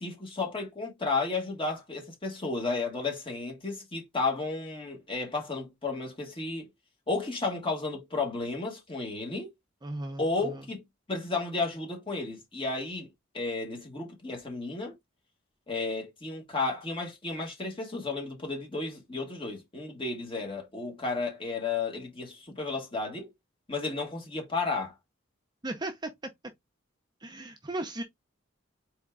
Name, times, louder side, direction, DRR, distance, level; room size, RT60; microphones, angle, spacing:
voice 1, 0.0-6.7 7.1-9.5 10.2-10.8 11.1-13.1 13.3-14.9 15.7-23.3 23.7-24.9, left 3 dB, 25° left, 1.8 m, -33 dB
voice 2, 9.8-10.6 25.6-26.1 27.2-28.0, right 2 dB, 20° right, 0.6 m, -36 dB
4.3 x 3.4 x 3.6 m
head